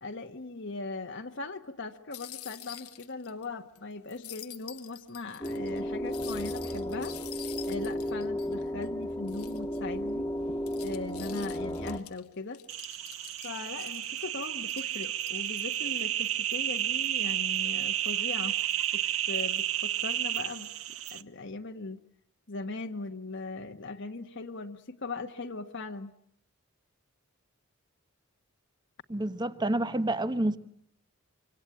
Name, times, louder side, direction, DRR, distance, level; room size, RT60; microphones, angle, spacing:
voice 1, 0.0-7.2 7.6-10.3 10.8-12.6 13.4-18.6 18.9-20.7 21.1-22.0 22.5-26.1, left 3 dB, 55° left, 1.3 m, -39 dB
sound 1, 2.1-3.4 3.7-3.8 4.1-8.9 9.3-9.8 10.3-14.2 14.7-15.6, left 14 dB, 90° left, 1.3 m, -47 dB
sound 2, 5.4-12.0, equal, 15° left, 1.6 m, -34 dB
sound 3, 12.7-21.2, right 11 dB, 70° right, 1.1 m, -31 dB
voice 2, 29.1-30.6, right 1 dB, 20° right, 1.1 m, -28 dB
25.5 x 25.5 x 8.8 m
head